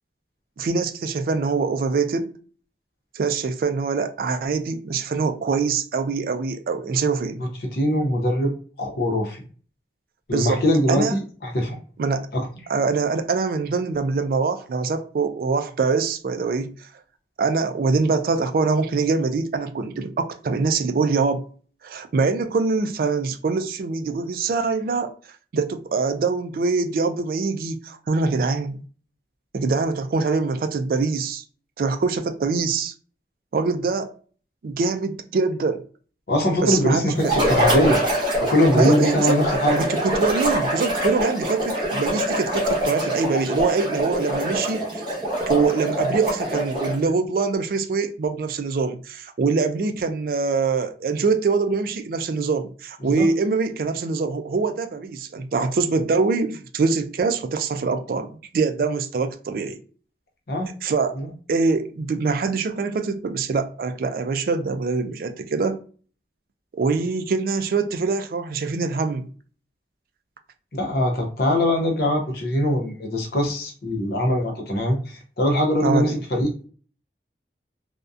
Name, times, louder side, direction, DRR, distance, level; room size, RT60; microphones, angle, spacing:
voice 1, 0.6-2.3 3.1-7.4 10.3-10.6 10.9-11.2 12.0-12.3 12.7-16.8 17.4-21.5 21.8-25.1 25.5-28.8 29.5-31.4 31.8-32.9 33.5-34.1 34.6-35.8 36.6-37.3 38.7-39.4 39.7-45.1 45.5-58.3 58.5-59.8 60.8-61.2 61.5-65.8 66.7-69.3 75.8-76.2, right 4 dB, 50° right, 0.3 m, -24 dB
voice 2, 7.4-9.4 10.3-11.8 12.3-12.4 36.3-38.0 38.5-39.8 53.0-53.3 60.5-60.7 61.1-61.3 70.7-76.7, left 1 dB, 55° left, 0.7 m, -22 dB
sound 1, 37.2-47.1, right 1 dB, 25° right, 0.9 m, -24 dB
2.6 x 2.1 x 2.3 m
head